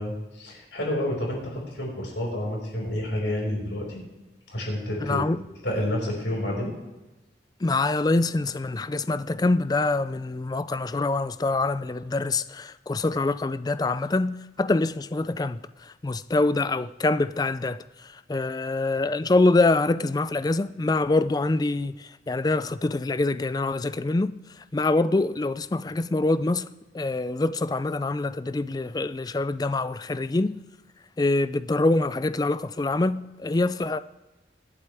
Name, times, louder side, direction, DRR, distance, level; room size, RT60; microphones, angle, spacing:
voice 1, 0.0-4.0 4.5-5.2 5.6-6.8, left 1 dB, 75° left, 5.5 m, -29 dB
voice 2, 5.0-5.4 7.6-26.7 26.9-30.6 31.2-34.0, left 2 dB, 20° left, 0.3 m, -25 dB
23.5 x 8.6 x 3.5 m
head